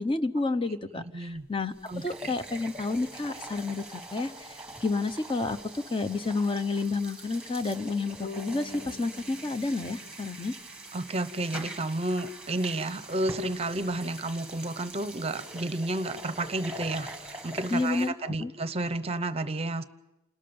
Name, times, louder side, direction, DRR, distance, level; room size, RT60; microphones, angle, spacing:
voice 1, 0.0-10.5 17.7-18.5, left 3 dB, 25° left, 10 dB, 0.8 m, -30 dB
sound 1, 1.4-1.5 1.7-18.1, right 1 dB, 5° right, 1.5 m, -43 dB
voice 2, 1.9-2.3 10.9-19.8, right 2 dB, 25° right, 12 dB, 0.8 m, -31 dB
sound 2, 8.2-11.5, left 4 dB, 50° left, 2.5 m, -46 dB
28.5 x 13.0 x 8.8 m, 0.96 s
head